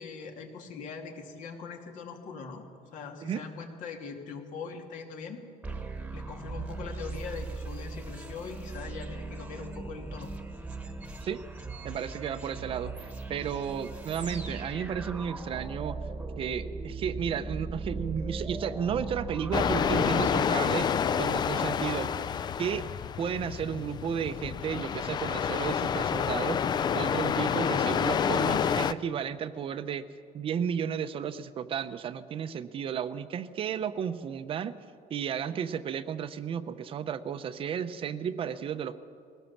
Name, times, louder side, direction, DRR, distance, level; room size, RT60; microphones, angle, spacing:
voice 1, 0.0-2.7 2.9-5.4 6.1-10.3, left 5 dB, 65° left, 3 dB, 2.5 m, -41 dB
sound 1, 5.6-21.2, right 3 dB, 10° right, 1.3 m, -39 dB
voice 2, 11.8-16.0 16.4-20.9 21.2-22.1 22.6-22.9 23.2-30.0 30.3-34.7 35.1-39.0, right 8 dB, 40° right, 11 dB, 0.7 m, -33 dB
sound 2, 19.5-28.9, left 7 dB, 30° left, 0.4 m, -28 dB
20.5 x 17.5 x 7.2 m, 2.3 s
cardioid pair, 155°, 14 cm